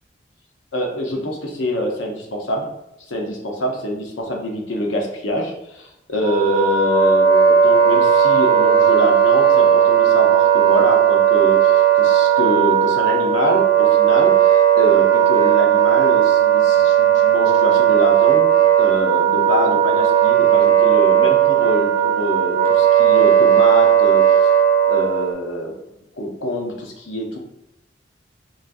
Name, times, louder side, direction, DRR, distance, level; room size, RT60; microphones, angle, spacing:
voice 1, 0.7-2.7 3.1-24.5 24.9-25.7 26.2-27.4, equal, 85° left, 0 dB, 0.7 m, -25 dB
Wind instrument woodwind instrument, 6.2-25.3, right 8 dB, 50° right, 0.6 m, -15 dB
3.9 x 2.3 x 2.5 m, 0.86 s
head